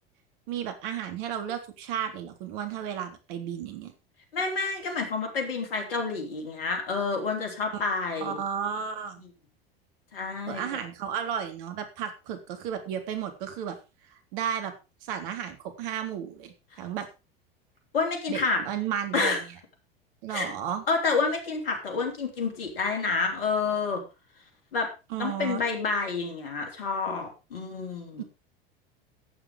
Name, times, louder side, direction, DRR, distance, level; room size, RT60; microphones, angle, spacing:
voice 1, 0.5-3.9 7.7-9.2 10.5-13.8 14.3-14.7 15.0-17.1 18.3-19.4 20.2-20.8 25.1-25.6 28.2-28.3, right 8 dB, 60° right, 7 dB, 3.6 m, -33 dB
voice 2, 4.3-8.4 10.1-10.8 17.9-18.6 19.1-19.4 20.3-20.5 20.9-24.0 24.7-24.9 25.2-28.2, left 4 dB, 70° left, 3 dB, 3.8 m, -29 dB
14.5 x 8.0 x 5.0 m, 0.29 s
hypercardioid pair, 80°, 30 cm